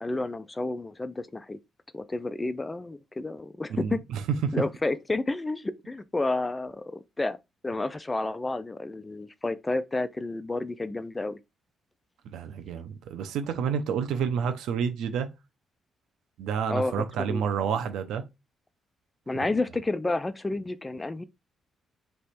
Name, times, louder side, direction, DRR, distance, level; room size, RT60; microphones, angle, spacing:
voice 1, 0.0-1.6 1.9-4.0 4.5-7.4 7.6-11.4 16.7-17.4 19.3-21.2, left 2 dB, 15° left, 0.4 m, -30 dB
voice 2, 12.3-15.3 16.4-18.2, right 7 dB, 85° right, 0.8 m, -29 dB
3.4 x 3.1 x 4.3 m
cardioid pair, 110°, 0 cm